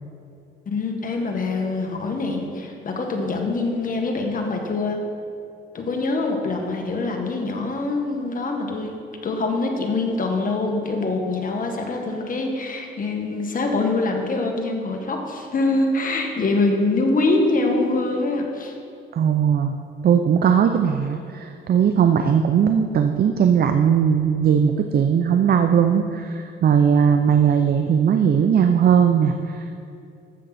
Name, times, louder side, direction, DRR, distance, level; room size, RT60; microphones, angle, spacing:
voice 1, 0.6-5.0 5.7-18.7, left 3 dB, 45° left, 2 dB, 1.7 m, -24 dB
voice 2, 19.1-19.8 20.0-29.7, right 7 dB, 50° right, 7 dB, 0.6 m, -18 dB
13.5 x 7.5 x 4.2 m, 2.6 s
cardioid pair, 90°, 20 cm